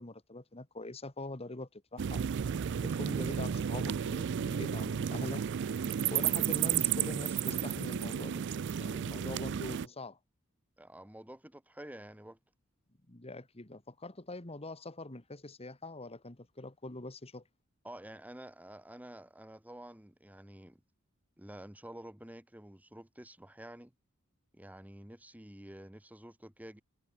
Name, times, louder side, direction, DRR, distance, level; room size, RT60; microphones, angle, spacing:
voice 1, 0.0-2.2 2.8-5.4 6.1-8.5 8.8-10.2 13.1-17.4, left 2 dB, 30° left, 1.9 m, -43 dB
sound 1, 2.0-9.9, right 8 dB, 55° right, 0.4 m, -32 dB
voice 2, 9.1-9.4 10.8-12.4 17.8-20.8 21.4-23.9 24.5-26.8, right 1 dB, 10° right, 1.8 m, -49 dB
head